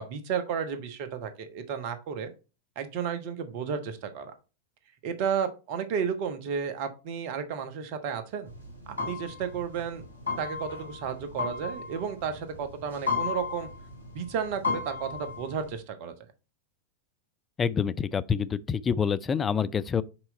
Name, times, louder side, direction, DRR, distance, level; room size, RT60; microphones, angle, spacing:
voice 1, 0.0-2.3 2.8-4.3 5.0-8.5 9.0-10.0 10.4-13.7 14.1-16.1, right 7 dB, 45° right, 1.1 m, -32 dB
sound 1, 8.5-15.7, left 4 dB, 80° left, 2.8 m, -34 dB
voice 2, 17.6-20.0, left 7 dB, 20° left, 0.4 m, -27 dB
6.0 x 4.5 x 4.3 m
figure-of-eight pair, 90°, 0 cm